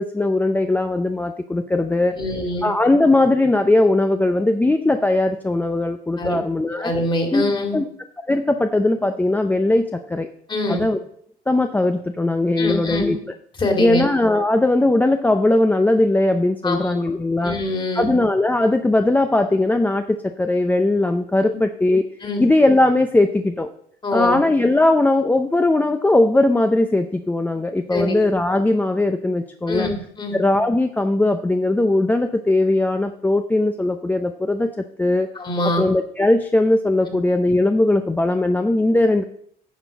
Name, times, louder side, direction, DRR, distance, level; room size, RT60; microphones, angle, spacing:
voice 1, 0.0-2.2 2.6-6.9 7.3-7.4 7.7-7.9 8.3-10.3 10.7-11.0 11.5-13.2 13.8-17.6 18.0-22.0 22.4-23.7 24.1-29.9 30.3-34.7 35.0-35.3 35.8-39.2, left 2 dB, 10° left, 7 dB, 0.5 m, -19 dB
voice 2, 2.1-2.7 6.2-6.4 6.7-7.8 10.5-10.8 12.6-13.1 13.6-14.1 16.6-17.0 17.4-18.1 21.4-21.6 22.2-22.5 24.0-24.4 27.9-28.3 29.7-30.4 35.3-35.8, left 2 dB, 30° left, 3 dB, 2.4 m, -24 dB
10.0 x 6.1 x 5.2 m, 0.66 s
cardioid pair, 110°, 17 cm